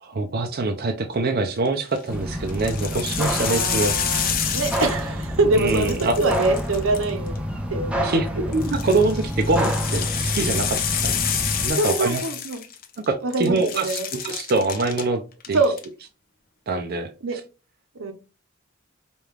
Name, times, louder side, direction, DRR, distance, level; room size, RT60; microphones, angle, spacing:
voice 1, 0.0-3.9 5.5-6.2 8.0-11.2 11.6-12.2 13.1-15.2 15.5-15.6 16.7-17.1, right 3 dB, 50° right, 4 dB, 0.5 m, -24 dB
sound 1, 1.7-2.0 2.5-5.2 5.5-7.4 8.5-13.1 13.3-15.0 15.4-15.9, left 8 dB, 45° left, 0.6 m, -28 dB
sound 2, 2.1-11.7, equal, 5° right, 0.7 m, -28 dB
voice 2, 3.5-7.4 7.7-8.2 11.7-12.6 13.2-14.1 15.5-15.8 17.2-17.4 17.9-18.1, right 2 dB, 80° right, 7 dB, 0.8 m, -24 dB
5.0 x 2.4 x 3.2 m, 0.31 s
head